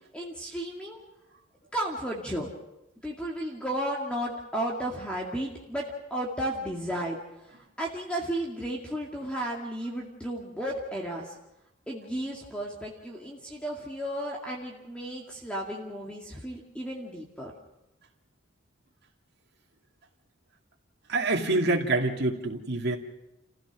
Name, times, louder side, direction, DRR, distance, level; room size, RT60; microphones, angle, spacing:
voice 1, 0.1-1.0 1.7-2.5 3.0-5.9 6.1-7.2 7.5-11.3 11.9-17.5, right 1 dB, 5° left, -2 dB, 2.3 m, -33 dB
voice 2, 21.1-23.0, right 2 dB, 60° right, -1 dB, 2.3 m, -26 dB
29.5 x 16.0 x 6.2 m, 0.94 s
head